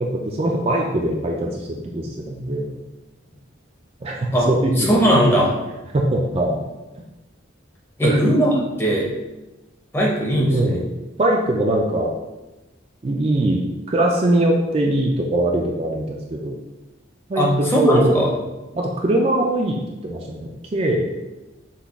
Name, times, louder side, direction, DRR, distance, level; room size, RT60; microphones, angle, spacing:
voice 1, 0.0-2.7 4.0-5.2 5.9-6.6 6.9-7.0 8.0-8.2 10.5-10.9 11.2-12.1 13.0-16.6 17.3-18.3 18.7-21.1, right 1 dB, 30° right, 0 dB, 0.4 m, -21 dB
voice 2, 4.8-5.6 8.0-8.5 8.8-9.1 9.9-10.8 17.4-18.3, equal, 10° left, -3 dB, 0.7 m, -18 dB
5.8 x 2.3 x 3.5 m, 1.0 s
head